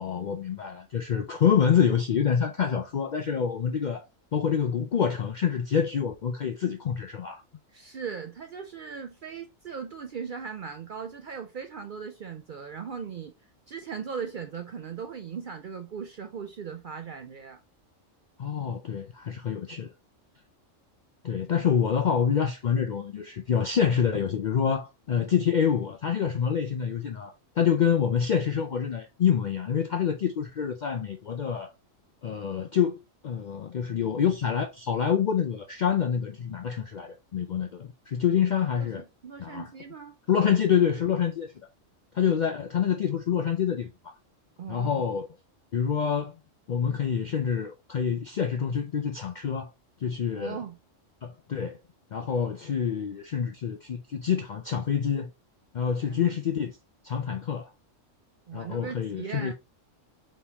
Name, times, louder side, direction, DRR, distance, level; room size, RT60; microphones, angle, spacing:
voice 1, 0.0-4.0 4.3-7.4 18.4-19.9 21.2-31.7 32.2-39.0 39.4-39.7 40.3-41.5 42.1-44.1 44.7-45.3 45.7-46.4 46.7-49.7 50.0-50.6 51.2-51.8 52.1-55.3 55.7-56.8 57.0-57.7 58.5-59.5, left 7 dB, 65° left, 0.4 m, -27 dB
voice 2, 7.7-13.3 13.7-17.6 38.8-40.5 44.6-45.0 50.4-50.8 56.0-56.3 58.5-59.5, right 6 dB, 60° right, 0.5 m, -38 dB
4.1 x 3.7 x 2.9 m
omnidirectional pair, 1.3 m